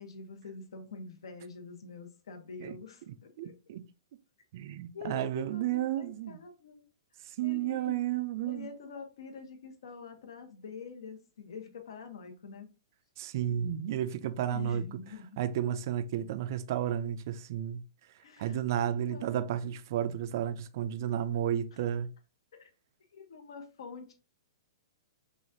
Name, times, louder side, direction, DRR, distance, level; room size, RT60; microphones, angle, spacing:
voice 1, 0.0-3.5 4.9-6.8 7.4-8.0 8.5-12.7 14.5-15.4 18.2-19.4 21.7-21.8 22.5-22.7 23.1-24.1, left 5 dB, 75° left, 1.1 m, -46 dB
voice 2, 3.1-3.9 4.5-6.4 7.3-8.7 13.2-14.8 15.4-17.8 18.4-22.1, right 10 dB, 45° right, 0.4 m, -32 dB
6.1 x 2.4 x 2.7 m
hypercardioid pair, 170°, 3 cm